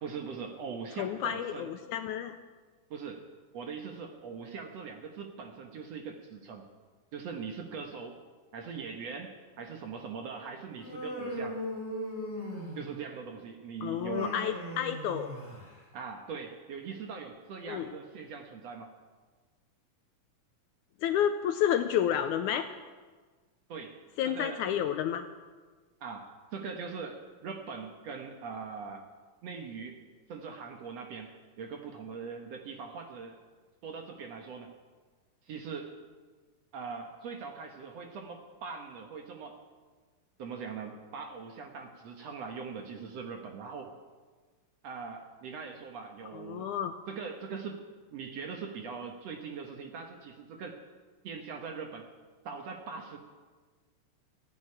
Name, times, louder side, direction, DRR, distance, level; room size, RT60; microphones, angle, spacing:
voice 1, 0.0-1.7 2.9-3.3 3.5-6.7 7.1-8.2 8.5-11.6 12.8-14.3 15.9-18.9 23.7-24.6 26.0-29.1 29.4-30.0 30.3-33.4 33.8-34.7 35.5-35.9 36.7-39.6 40.4-43.9 44.8-46.7 47.1-47.8 48.1-50.8 51.2-52.1 52.5-53.2, right 5 dB, 60° right, 4 dB, 1.9 m, -41 dB
voice 2, 1.0-2.4 13.8-15.3 17.7-17.9 21.0-22.7 24.2-25.3 46.3-46.9, left 9 dB, 80° left, 9 dB, 1.9 m, -30 dB
Human voice, 10.8-13.0 13.9-15.8, equal, 5° right, 4.7 m, -38 dB
15.0 x 9.1 x 9.8 m, 1.4 s
omnidirectional pair, 4.0 m